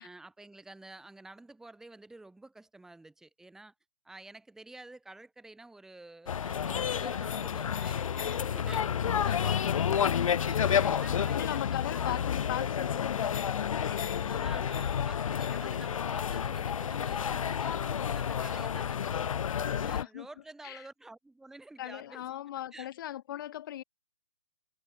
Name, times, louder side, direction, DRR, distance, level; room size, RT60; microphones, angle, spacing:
voice 1, 0.0-3.7 4.0-8.9 9.4-10.0 10.4-11.6 11.9-12.2 14.4-19.4 19.8-22.3 22.7-22.9, right 2 dB, 5° right, 2.4 m, -50 dB
sound 1, 6.3-20.0, left 8 dB, 65° left, 0.7 m, -30 dB
voice 2, 9.2-10.4 11.3-14.5 19.4-20.3 20.6-20.9 21.8-23.8, left 12 dB, 35° left, 1.3 m, -39 dB
hypercardioid pair, 160°, 18 cm